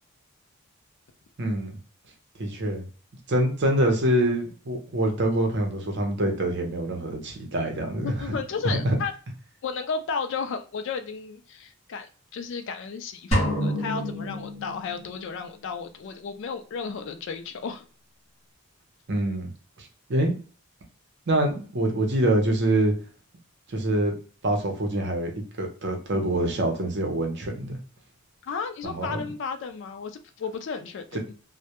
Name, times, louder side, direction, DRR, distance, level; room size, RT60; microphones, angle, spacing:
voice 1, 1.4-1.7 2.4-2.9 3.3-8.4 8.6-9.0 19.1-19.5 19.8-20.3 21.3-22.9 23.7-24.1 24.4-25.3 25.6-27.8 28.8-29.2, right 1 dB, 50° right, 3 dB, 0.6 m, -25 dB
voice 2, 8.0-9.1 9.6-17.8 28.4-31.2, left 5 dB, 55° left, 8 dB, 0.3 m, -33 dB
sound 1, 13.3-15.3, equal, 30° left, 0.8 m, -28 dB
2.1 x 2.1 x 2.8 m, 0.38 s
head